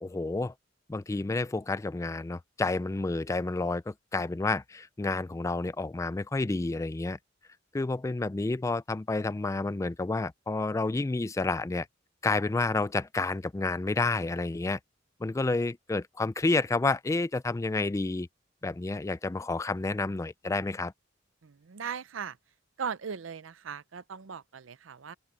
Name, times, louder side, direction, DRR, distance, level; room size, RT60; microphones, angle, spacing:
voice 1, 0.0-0.5 0.9-7.2 7.7-11.9 12.2-14.8 15.2-18.3 18.6-20.9, left 3 dB, 15° left, 0.3 m, -30 dB
voice 2, 21.4-22.4 22.8-25.1, right 6 dB, 80° right, 0.6 m, -38 dB
open air
head